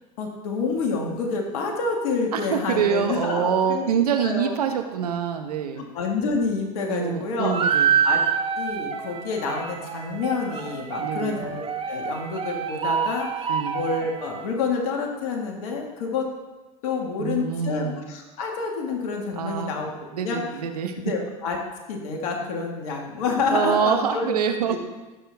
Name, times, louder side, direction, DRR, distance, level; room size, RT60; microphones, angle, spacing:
voice 1, 0.2-4.6 5.8-7.7 8.0-8.2 8.6-13.5 13.7-16.3 16.8-20.4 21.0-21.6 21.9-24.4 24.7-24.8, left 4 dB, 75° left, 0 dB, 1.9 m, -28 dB
voice 2, 2.3-5.8 6.9-7.9 11.0-11.4 13.5-13.8 17.2-18.0 19.4-19.7 20.1-20.9 23.5-24.8, right 8 dB, 90° right, 6 dB, 1.1 m, -25 dB
sound 1, 7.4-14.5, right 7 dB, 30° right, 1.1 m, -26 dB
15.5 x 6.8 x 3.5 m, 1.2 s
hypercardioid pair, 90°, 19 cm